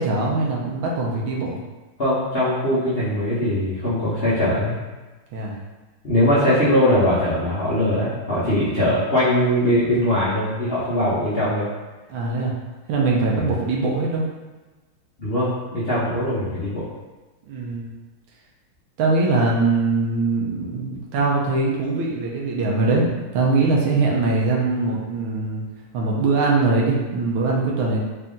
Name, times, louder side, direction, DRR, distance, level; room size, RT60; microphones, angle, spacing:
voice 1, 0.0-1.6 5.3-5.6 12.1-12.5 12.9-14.2 17.5-17.9 19.0-25.7 25.9-28.0, right 3 dB, 75° right, -2 dB, 1.5 m, -22 dB
voice 2, 2.0-4.7 6.0-11.7 13.4-13.5 15.2-16.9, left 1 dB, 60° left, -10 dB, 0.6 m, -21 dB
4.2 x 2.6 x 3.6 m, 1.2 s
omnidirectional pair, 2.4 m